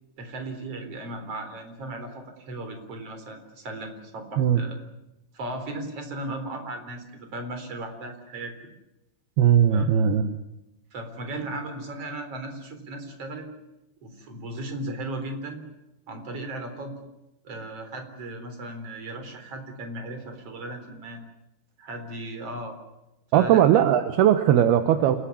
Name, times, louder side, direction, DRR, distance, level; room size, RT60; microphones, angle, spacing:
voice 1, 0.2-4.8 5.3-8.5 9.7-10.0 10.9-13.5 14.0-15.6 16.1-16.9 17.4-21.2 21.8-22.8 23.3-23.6, right 1 dB, 35° right, 6 dB, 4.5 m, -36 dB
voice 2, 9.4-10.4 23.3-25.2, right 10 dB, 75° right, 9 dB, 2.9 m, -19 dB
28.5 x 16.5 x 9.9 m, 0.92 s
omnidirectional pair, 4.7 m